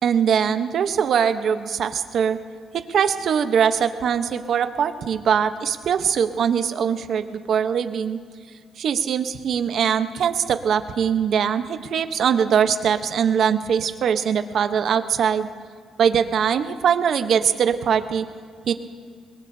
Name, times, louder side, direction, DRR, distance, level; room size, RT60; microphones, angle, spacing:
voice 1, 0.0-2.4 2.7-8.2 8.8-15.5 16.0-18.3 18.7-18.8, right 7 dB, 65° right, 9 dB, 0.9 m, -22 dB
22.0 x 21.0 x 2.8 m, 2.1 s
cardioid pair, 90°, 0 cm